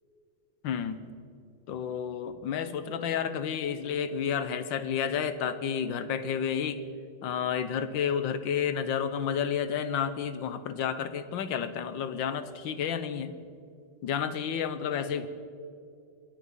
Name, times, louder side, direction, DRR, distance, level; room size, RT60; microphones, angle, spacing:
voice 1, 0.6-1.1 1.7-6.8 7.2-13.3 14.0-15.3, left 7 dB, 80° left, 11 dB, 1.6 m, -31 dB
27.0 x 10.0 x 5.4 m, 2.4 s
omnidirectional pair, 2.1 m